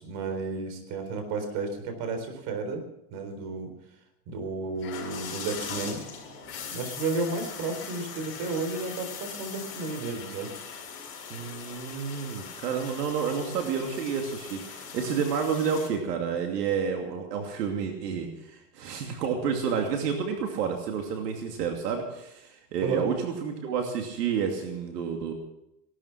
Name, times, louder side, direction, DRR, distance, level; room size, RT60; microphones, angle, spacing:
voice 1, 0.0-2.8 3.1-3.7 4.3-6.0 6.7-10.5 22.8-23.1, right 3 dB, 45° right, 7 dB, 4.0 m, -32 dB
sound 1, 4.8-15.9, left 6 dB, 25° left, 5.7 m, -40 dB
voice 2, 11.3-25.3, right 6 dB, 80° right, 3 dB, 2.7 m, -30 dB
18.0 x 12.5 x 5.9 m, 0.84 s
supercardioid pair, 145°, 48 cm